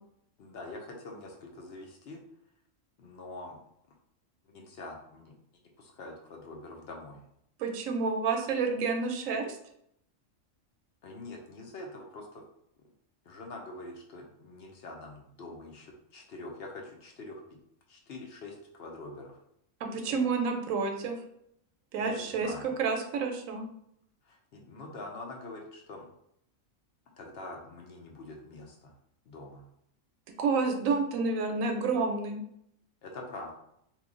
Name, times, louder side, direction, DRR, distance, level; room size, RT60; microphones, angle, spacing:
voice 1, 0.4-2.2 3.0-3.6 4.5-5.3 5.8-7.2 11.0-12.4 13.3-17.4 17.9-19.4 22.0-22.7 24.2-26.1 27.2-28.9 29.3-29.6 33.0-33.5, left 2 dB, 60° left, 0 dB, 0.8 m, -44 dB
voice 2, 7.6-9.6 19.8-21.2 21.9-23.6 30.4-32.4, right 4 dB, 80° right, 4 dB, 1.0 m, -29 dB
3.0 x 2.3 x 3.7 m, 0.74 s
omnidirectional pair, 1.4 m